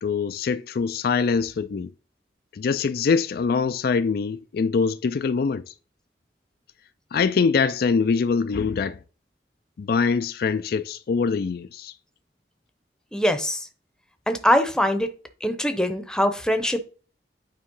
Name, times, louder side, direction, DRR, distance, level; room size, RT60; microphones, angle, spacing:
voice 1, 0.0-1.9 2.5-5.7 7.1-9.0 9.8-11.9, left 5 dB, 55° left, 0.4 m, -23 dB
voice 2, 13.1-13.7 14.3-15.1 15.4-16.8, equal, 5° left, 0.7 m, -22 dB
8.8 x 3.1 x 5.4 m
head